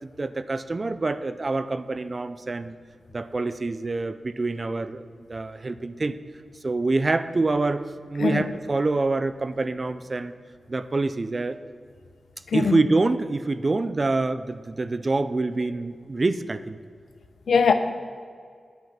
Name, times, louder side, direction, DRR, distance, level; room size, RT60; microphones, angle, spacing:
voice 1, 0.0-2.7 3.1-6.2 6.6-7.8 8.1-10.3 10.7-11.6 12.5-16.8, right 3 dB, 40° right, 0.4 m, -26 dB
voice 2, 12.5-12.8 17.5-17.7, left 6 dB, 90° left, 0.7 m, -21 dB
9.2 x 8.1 x 5.8 m
wide cardioid pair, 85°, 0 cm